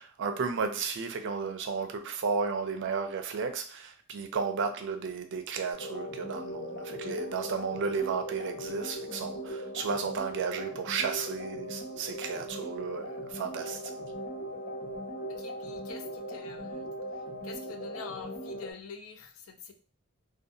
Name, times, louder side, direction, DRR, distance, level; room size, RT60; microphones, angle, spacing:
voice 1, 0.0-13.9, right 5 dB, 60° right, 0.4 m, -33 dB
sound 1, 5.7-18.7, equal, 55° left, 1.5 m, -39 dB
voice 2, 15.3-16.9 17.4-19.7, left 6 dB, 80° left, 0.4 m, -46 dB
2.7 x 2.2 x 2.6 m
head